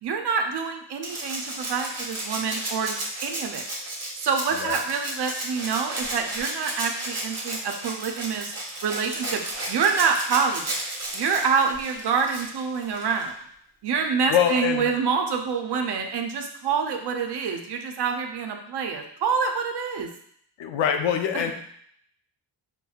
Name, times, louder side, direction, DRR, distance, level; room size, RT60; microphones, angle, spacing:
voice 1, 0.0-3.0 3.2-3.6 4.2-8.5 8.8-9.4 9.7-10.7 11.1-13.4 13.8-20.1 21.3-21.4, right 5 dB, 60° right, 4 dB, 0.6 m, -26 dB
Rattle (instrument), 1.0-13.3 14.7-14.8, right 1 dB, 35° right, 0.9 m, -33 dB
voice 2, 14.3-14.9 20.6-21.5, left 8 dB, 85° left, 5 dB, 0.5 m, -24 dB
4.2 x 2.1 x 2.3 m, 0.67 s
cardioid pair, 70°, 44 cm